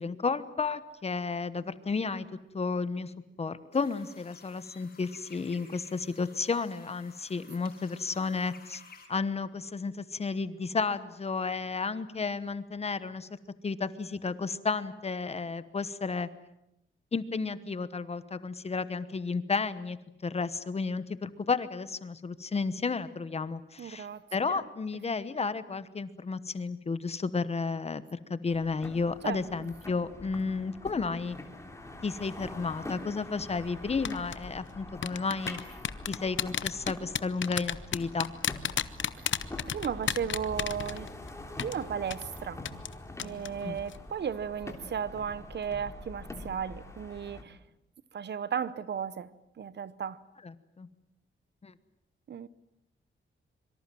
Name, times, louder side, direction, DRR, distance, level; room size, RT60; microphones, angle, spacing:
voice 1, 0.0-2.3 2.5-3.1 3.4-8.8 9.1-13.3 13.6-16.3 17.1-20.0 20.2-31.4 32.0-35.6 36.1-38.3 43.6-43.8 50.4-50.9 51.6-51.7, left 4 dB, 30° left, 1.1 m, -32 dB
sound 1, 3.7-9.1, left 5 dB, 45° left, 5.3 m, -54 dB
voice 2, 23.8-24.6 29.2-29.4 39.2-39.3 39.7-41.1 41.6-42.7 43.2-47.6 48.1-50.2 52.3-52.5, right 7 dB, 55° right, 0.9 m, -35 dB
sound 2, 28.5-47.4, left 2 dB, 15° left, 3.2 m, -44 dB
sound 3, 34.0-34.4 35.0-41.3 41.6-41.7 42.1-42.2 42.6-42.9 43.2-43.5 43.8-44.0, left 9 dB, 65° left, 0.9 m, -31 dB
25.5 x 24.0 x 7.6 m
wide cardioid pair, 175°, 21 cm